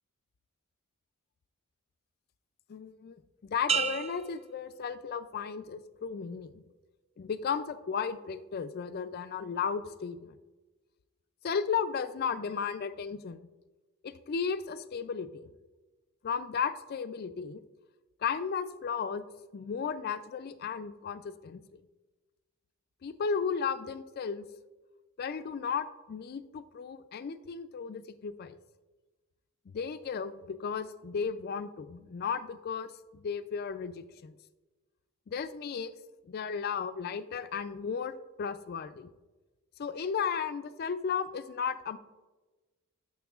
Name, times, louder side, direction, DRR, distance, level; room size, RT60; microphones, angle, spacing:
voice 1, 2.7-3.2 3.4-6.6 7.2-10.4 11.4-13.4 14.0-15.5 16.2-17.6 18.2-19.2 19.5-21.6 23.0-24.5 25.2-28.6 29.7-34.3 35.3-35.9 36.3-38.1 38.4-39.1 39.8-42.0, left 6 dB, 45° left, 13 dB, 0.3 m, -34 dB
sound 1, 3.7-5.5 6.0-6.4, right 6 dB, 30° right, 0.4 m, -34 dB
12.0 x 6.1 x 2.4 m, 1.2 s
head